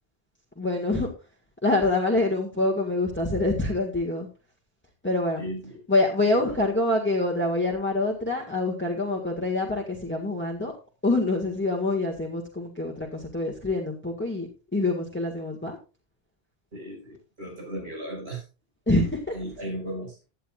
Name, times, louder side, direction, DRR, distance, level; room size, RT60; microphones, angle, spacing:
voice 1, 0.6-1.1 1.6-4.3 5.0-5.5 5.9-10.7 11.0-15.8 18.9-19.4, left 2 dB, 10° left, -1 dB, 1.9 m, -26 dB
voice 2, 5.4-5.8 6.4-6.6 16.7-18.4 19.3-20.2, right 1 dB, 90° right, -1 dB, 6.8 m, -36 dB
16.5 x 10.0 x 2.5 m, 0.31 s
omnidirectional pair, 1.0 m